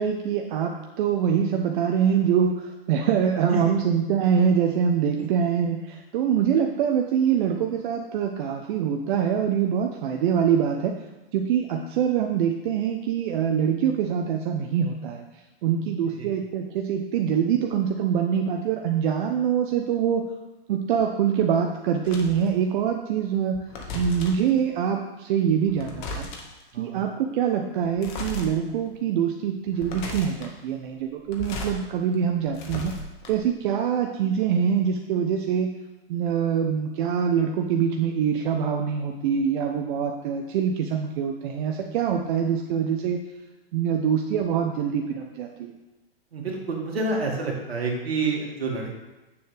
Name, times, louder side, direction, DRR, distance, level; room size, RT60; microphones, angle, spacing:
voice 1, 0.0-11.0 11.3-15.2 15.6-20.3 20.7-23.6 23.9-26.3 26.8-32.9 33.3-35.7 36.1-43.2 43.7-45.7, right 8 dB, 55° right, 3 dB, 0.8 m, -24 dB
sound 1, 22.1-22.5 23.5-24.5 25.6-26.6 28.0-28.5 29.0-29.1 29.7-30.5 31.2-31.8 32.1-33.6, left 2 dB, 50° left, 1.8 m, -35 dB
voice 2, 26.7-27.0 46.3-49.0, right 3 dB, 80° right, 0 dB, 2.3 m, -28 dB
8.7 x 7.0 x 3.4 m, 1.0 s
hypercardioid pair, 115°, 30 cm